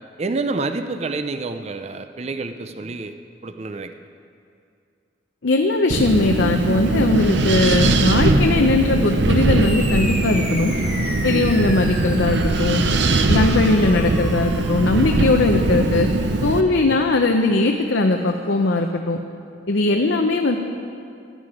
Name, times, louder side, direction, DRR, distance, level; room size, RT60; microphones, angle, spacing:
voice 1, 0.2-3.1 3.4-3.9 6.9-7.0 11.6-11.7 16.7-17.0, right 3 dB, 35° right, 8 dB, 0.5 m, -28 dB
voice 2, 5.4-10.7 11.2-12.8 13.3-16.1 16.4-19.2 19.7-20.6, left 2 dB, 70° left, 3 dB, 0.7 m, -19 dB
Wind, 5.9-16.6, right 2 dB, 65° right, 0.7 m, -20 dB
sound 1, 9.6-18.5, equal, 5° right, 2.2 m, -36 dB
15.5 x 11.0 x 4.9 m, 2.4 s
head